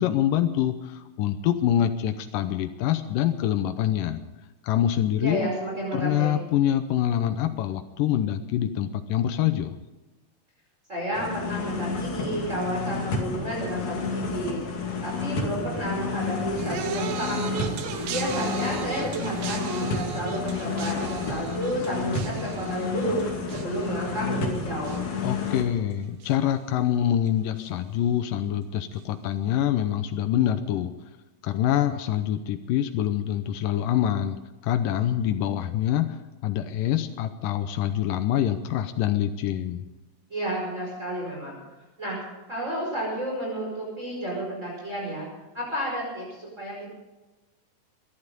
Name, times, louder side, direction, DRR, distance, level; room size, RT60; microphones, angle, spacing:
voice 1, 0.0-4.2 4.6-5.5 5.9-9.7 25.2-30.9 31.4-34.4 34.6-39.9, left 11 dB, 90° left, 8 dB, 2.5 m, -25 dB
voice 2, 5.2-6.4 10.9-14.6 15.0-17.7 18.1-25.0 40.3-41.6 42.0-42.2 42.5-45.3 45.5-46.9, right 1 dB, 20° right, -3 dB, 5.4 m, -31 dB
sound 1, 11.1-25.6, left 4 dB, 70° left, 4.0 m, -31 dB
sound 2, 16.6-25.9 26.2-26.7 27.6-27.7, right 7 dB, 85° right, 3.0 m, -37 dB
23.0 x 12.0 x 5.3 m, 1.1 s
omnidirectional pair, 3.8 m